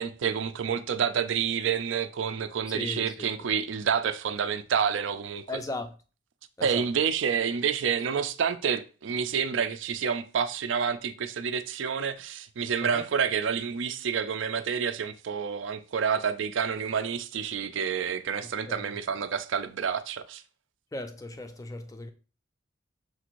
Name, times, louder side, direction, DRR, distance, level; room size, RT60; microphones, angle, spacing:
voice 1, 0.0-5.6 6.6-20.4, right 7 dB, 65° right, 0.4 m, -29 dB
voice 2, 5.5-5.9 6.6-6.8 12.9-13.0 18.7-18.9 20.9-22.1, left 2 dB, 15° left, 0.4 m, -36 dB
6.3 x 2.5 x 2.9 m
head